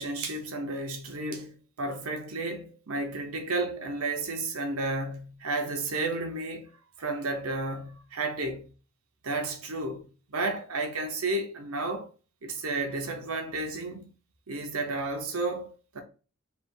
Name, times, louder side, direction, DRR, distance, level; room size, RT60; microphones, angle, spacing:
voice 1, 0.0-6.7 7.0-8.7 9.2-12.1 12.4-14.1 14.5-16.0, right 2 dB, 75° right, 1.0 m, -32 dB
3.5 x 2.6 x 4.4 m
head